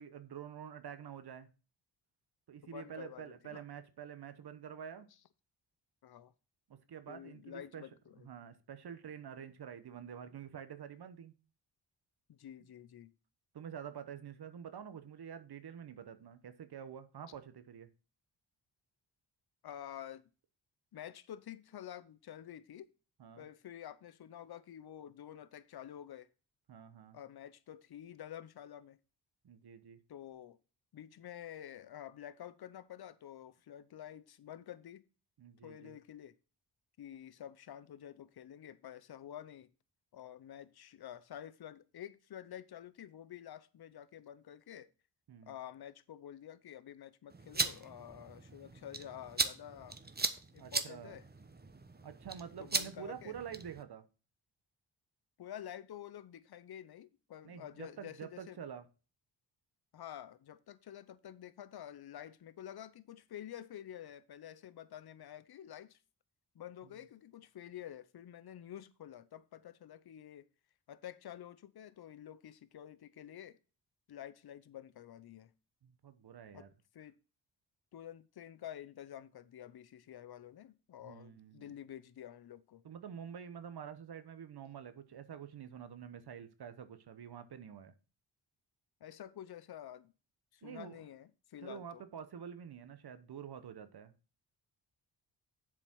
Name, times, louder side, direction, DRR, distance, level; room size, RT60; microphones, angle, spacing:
voice 1, 0.0-1.5 2.5-5.1 6.7-7.9 8.2-11.3 13.5-17.9 23.2-23.5 26.7-27.2 29.4-30.0 35.4-35.9 45.3-45.5 50.6-51.2 52.0-54.0 57.4-58.9 75.8-76.7 81.0-81.7 82.8-87.9 90.6-91.0 91.6-94.1, right 8 dB, 60° right, 1.0 m, -48 dB
voice 2, 2.6-3.6 6.0-6.3 7.1-8.3 12.3-13.1 19.6-20.3 20.9-22.9 23.4-26.3 27.1-29.0 30.1-30.6 30.9-35.1 35.6-36.3 37.0-39.7 40.1-44.9 45.5-50.0 50.5-51.2 52.6-53.3 55.4-58.6 59.9-66.0 66.5-70.5 70.9-73.6 74.1-75.5 76.5-76.7 76.9-77.2 77.9-82.8 89.0-90.1 90.5-92.0, left 10 dB, 55° left, 0.8 m, -49 dB
sound 1, 47.3-53.8, right 3 dB, 20° right, 1.0 m, -39 dB
7.4 x 4.9 x 6.0 m
cardioid pair, 55°, 44 cm